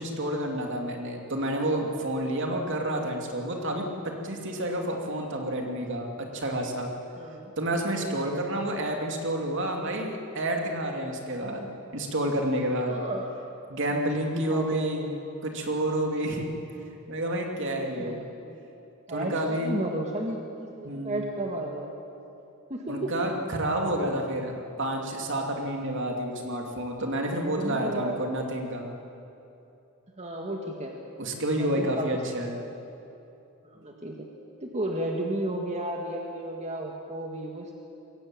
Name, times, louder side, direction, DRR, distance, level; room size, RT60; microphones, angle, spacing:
voice 1, 0.0-6.9 7.6-13.0 13.7-15.1 15.4-16.5 16.9-18.3 19.1-19.8 20.8-21.3 22.9-28.9 31.2-32.6, right 1 dB, 55° right, 2 dB, 2.8 m, -29 dB
voice 2, 7.2-7.5 8.1-8.5 12.9-13.3 14.2-14.9 17.8-18.6 19.1-21.9 22.7-23.1 27.4-28.2 30.2-30.9 31.6-32.4 33.6-34.2 34.6-37.7, right 1 dB, 30° right, 0 dB, 1.8 m, -33 dB
22.5 x 17.0 x 9.1 m, 2.8 s
head